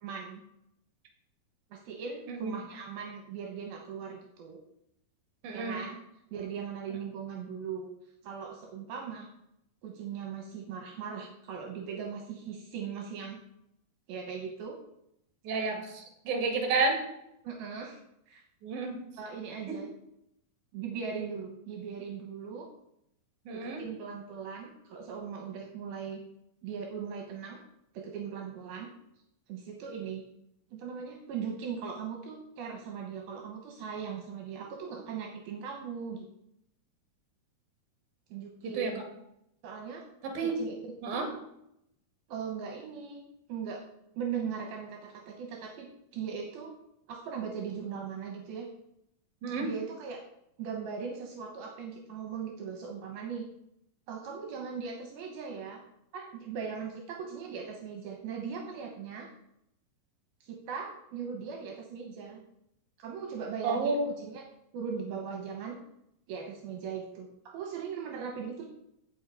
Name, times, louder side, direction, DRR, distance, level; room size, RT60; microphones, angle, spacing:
voice 1, 0.0-0.4 1.7-4.6 5.5-6.0 6.3-7.9 8.2-9.3 9.8-13.4 14.1-14.8 17.4-18.0 18.3-18.4 19.2-19.9 20.7-22.7 23.5-26.2 26.6-27.6 27.9-28.9 29.5-30.2 30.7-36.3 38.3-39.0 39.6-40.0 40.4-40.7 41.1-41.3 42.3-43.2 43.5-43.8 44.2-45.9 46.1-46.7 47.1-48.7 49.6-50.2 50.6-53.5 54.1-55.8 56.1-59.3 60.4-62.4 63.0-64.4 64.7-65.8 66.3-68.7, right 6 dB, 75° right, 2 dB, 2.9 m, -39 dB
voice 2, 5.4-5.8 15.4-17.0 18.6-19.0 19.7-19.8 23.5-23.8 38.6-38.9 40.2-40.6 41.0-41.3 49.4-49.7 63.6-64.1, right 3 dB, 55° right, 3 dB, 3.1 m, -30 dB
16.0 x 5.4 x 4.7 m, 0.78 s
omnidirectional pair, 4.4 m